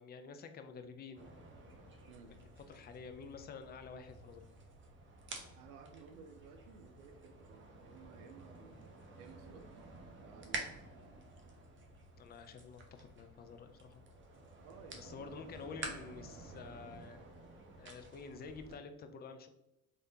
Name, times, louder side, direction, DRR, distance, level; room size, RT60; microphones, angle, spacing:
voice 1, 0.0-1.3 2.7-4.5 12.2-14.0 15.0-17.2 17.8-19.5, left 5 dB, 25° left, 8 dB, 0.3 m, -49 dB
sound 1, 1.2-18.8, right 3 dB, 30° right, 0.7 m, -50 dB
voice 2, 5.6-8.9 9.2-9.7 10.2-10.7 14.6-15.5, right 5 dB, 85° right, 7 dB, 0.6 m, -56 dB
3.4 x 2.6 x 2.6 m, 0.88 s
hypercardioid pair, 70°, 43 cm